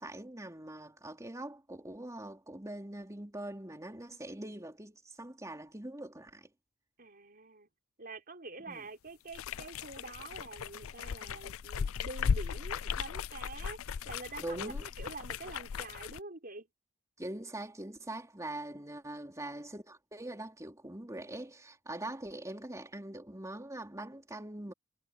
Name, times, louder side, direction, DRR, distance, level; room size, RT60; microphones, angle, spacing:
voice 1, 0.0-6.5 8.7-8.8 14.4-14.8 17.2-24.7, right 1 dB, 15° right, 3.4 m, -43 dB
voice 2, 7.0-7.7 8.0-13.8 14.0-16.7 18.9-19.1, right 3 dB, 45° right, 5.1 m, -46 dB
sound 1, 9.3-16.2, left 6 dB, 80° left, 0.5 m, -37 dB
head